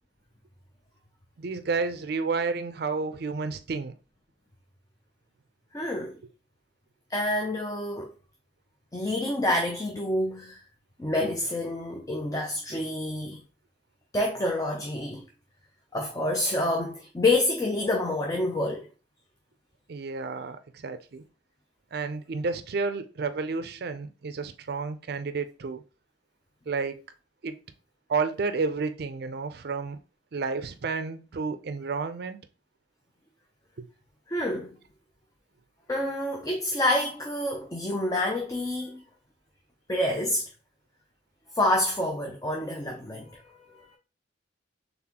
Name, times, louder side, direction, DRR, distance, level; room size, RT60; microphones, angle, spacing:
voice 1, 1.4-3.9 19.9-21.2 21.9-25.8 26.7-27.0 27.4-27.6 28.1-30.0 30.3-32.4 33.8-33.9, right 4 dB, 60° right, 0.4 m, -31 dB
voice 2, 5.7-6.2 7.1-8.1 8.9-10.6 11.0-13.4 14.1-15.2 15.9-18.9 34.3-34.8 35.9-39.0 39.9-40.5 41.5-43.9, left 1 dB, 20° left, 0.5 m, -28 dB
4.0 x 3.4 x 2.9 m
head